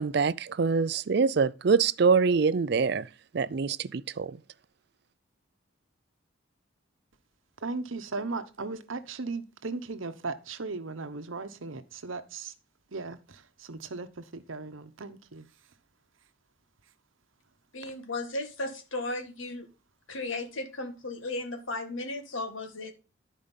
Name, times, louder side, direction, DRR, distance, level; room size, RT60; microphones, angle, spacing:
voice 1, 0.0-3.0 3.3-4.3, right 5 dB, 50° right, 0.4 m, -25 dB
voice 2, 7.6-12.5 12.9-15.5 17.8-17.9, right 3 dB, 75° right, 1.0 m, -37 dB
voice 3, 17.7-19.7 20.1-22.9, left 2 dB, 75° left, 1.7 m, -35 dB
11.5 x 5.1 x 5.3 m
head